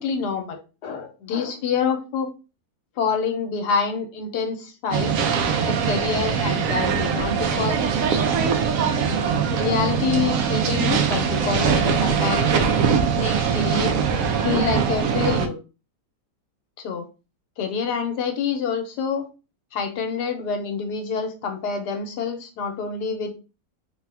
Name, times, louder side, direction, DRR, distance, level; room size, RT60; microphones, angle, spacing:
voice 1, 0.0-2.3 3.0-5.1 5.7-7.8 9.5-12.7 13.1-13.9 14.4-15.6 16.8-17.1 17.6-19.3 19.7-23.3, left 6 dB, 85° left, 5 dB, 1.3 m, -27 dB
sound 1, 4.9-15.5, right 6 dB, 70° right, 0.9 m, -22 dB
3.5 x 2.2 x 3.3 m, 0.31 s
omnidirectional pair, 1.7 m